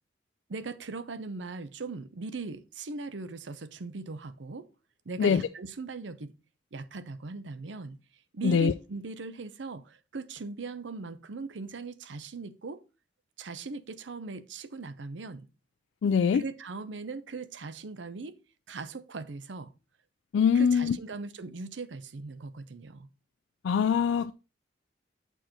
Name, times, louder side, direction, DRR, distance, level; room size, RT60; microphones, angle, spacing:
voice 1, 0.5-4.7 5.1-6.3 6.7-8.0 8.3-12.8 13.4-15.5 16.3-18.4 18.7-19.7 20.5-23.1, right 4 dB, 80° right, 0.6 m, -39 dB
voice 2, 16.0-16.4 20.3-21.0 23.6-24.3, left 6 dB, 85° left, 0.3 m, -23 dB
7.8 x 4.6 x 4.2 m
head